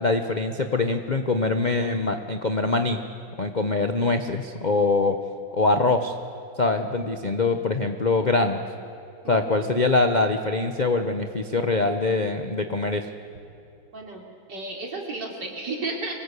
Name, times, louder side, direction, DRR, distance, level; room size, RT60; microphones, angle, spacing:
voice 1, 0.0-3.0 3.4-5.2 5.5-6.1 6.6-8.6 9.3-13.1, left 3 dB, 40° left, 6 dB, 0.6 m, -23 dB
voice 2, 13.9-14.2 14.5-16.1, right 3 dB, 60° right, 0 dB, 3.8 m, -32 dB
25.0 x 19.5 x 8.3 m, 2.8 s
omnidirectional pair, 2.1 m